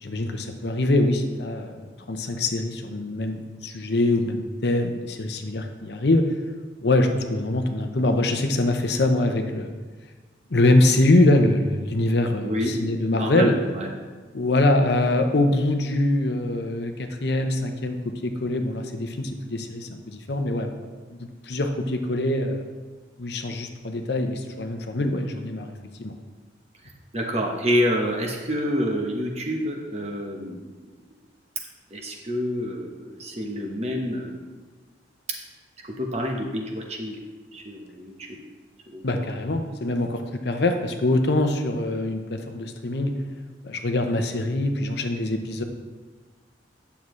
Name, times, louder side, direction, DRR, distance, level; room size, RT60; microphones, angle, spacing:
voice 1, 0.0-6.3 6.8-9.7 10.5-13.5 14.3-22.6 23.2-25.7 26.0-26.1 39.0-43.1 43.6-45.6, left 2 dB, 60° left, 5 dB, 0.7 m, -24 dB
voice 2, 12.4-12.7 13.1-13.9 27.1-30.6 31.9-34.4 35.8-37.2 37.5-38.4 38.9-39.0, equal, 35° right, 1 dB, 1.0 m, -27 dB
9.6 x 6.9 x 3.1 m, 1.4 s
head